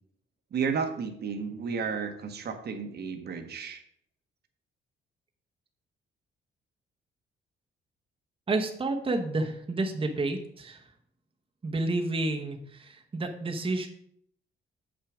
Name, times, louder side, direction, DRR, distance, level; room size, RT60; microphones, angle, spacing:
voice 1, 0.5-3.8, right 6 dB, 55° right, 6 dB, 1.2 m, -32 dB
voice 2, 8.5-10.8 11.6-13.9, right 2 dB, 25° right, 3 dB, 1.0 m, -30 dB
7.4 x 6.1 x 4.9 m, 0.68 s
cardioid pair, 90°, 20 cm